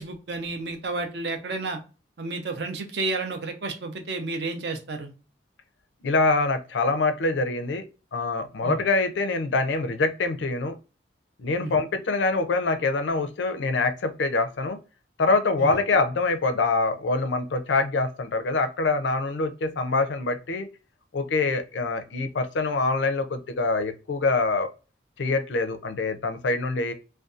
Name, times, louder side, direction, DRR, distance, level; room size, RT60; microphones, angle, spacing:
voice 1, 0.0-1.8 2.2-5.1 8.6-8.8 11.6-11.7 15.6-15.7, right 3 dB, 70° right, 5 dB, 0.6 m, -31 dB
voice 2, 6.0-7.9 8.1-10.8 11.4-14.8 15.2-20.7 21.1-24.7 25.2-26.9, left 3 dB, 80° left, 9 dB, 0.4 m, -25 dB
2.6 x 2.2 x 2.4 m, 0.33 s
head